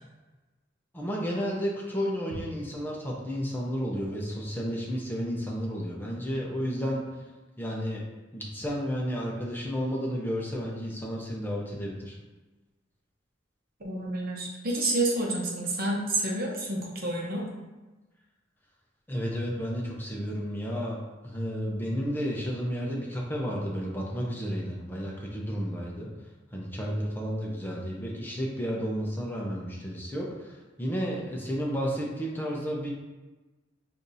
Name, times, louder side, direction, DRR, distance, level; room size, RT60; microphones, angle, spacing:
voice 1, 0.9-7.0 7.6-8.0 8.3-12.2 19.1-21.0 21.2-26.1 26.5-32.9, equal, 10° left, -3 dB, 0.6 m, -32 dB
voice 2, 13.8-17.5, right 2 dB, 55° right, -2 dB, 0.9 m, -29 dB
6.4 x 2.6 x 2.7 m, 1.2 s
head